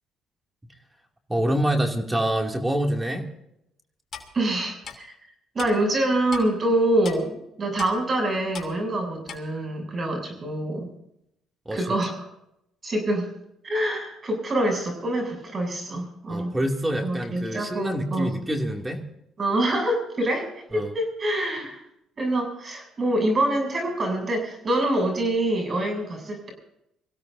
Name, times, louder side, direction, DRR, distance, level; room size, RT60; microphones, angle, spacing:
voice 1, 1.3-3.3 11.7-11.8 16.3-19.0 20.7-20.9, right 1 dB, 15° right, 3 dB, 2.7 m, -26 dB
Clock, 4.1-4.3 4.8-5.0 5.6-5.7 6.3-6.4 7.0-7.2 7.8-7.9 8.5-8.7 9.3-9.4, left 7 dB, 45° left, 3.2 m, -37 dB
voice 2, 4.3-5.1 5.5-10.9 11.7-12.3 12.8-13.3 13.6-16.5 17.0-18.3 19.4-21.8 22.2-26.5, right 1 dB, 35° right, 3 dB, 7.7 m, -25 dB
25.5 x 16.5 x 2.7 m, 0.79 s
supercardioid pair, 85°, 0 cm